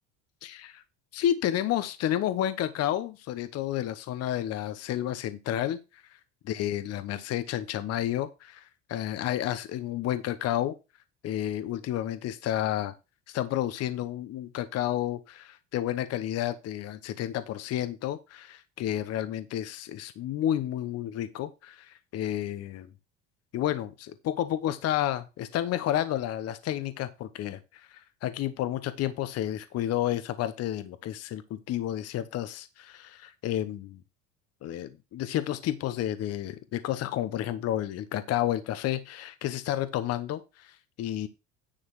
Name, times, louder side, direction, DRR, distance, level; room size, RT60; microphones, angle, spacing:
voice 1, 0.4-0.8 1.1-6.0 6.4-10.7 11.2-12.9 13.3-22.9 23.5-34.0 34.6-41.3, left 12 dB, 50° left, 12 dB, 0.9 m, -31 dB
10.0 x 3.9 x 6.2 m, 0.27 s
supercardioid pair, 110°, 32 cm